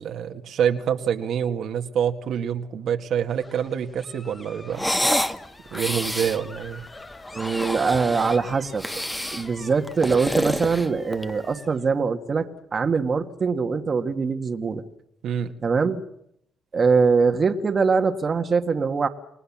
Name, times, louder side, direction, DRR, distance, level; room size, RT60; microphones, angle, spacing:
voice 1, 0.0-4.9 5.7-6.8 15.2-15.5, right 8 dB, 70° right, 5 dB, 1.9 m, -26 dB
sound 1, 3.3-11.9, left 2 dB, 25° left, 3.9 m, -45 dB
sound 2, 4.7-5.4 5.7-6.4 7.3-8.4 8.8-9.5 9.9-11.4, equal, 5° left, 1.7 m, -27 dB
voice 2, 7.3-8.9 9.3-14.8 15.6-16.0 16.7-19.1, right 5 dB, 40° right, 6 dB, 1.8 m, -23 dB
29.5 x 20.5 x 7.4 m, 0.75 s
cardioid pair, 90°, 0 cm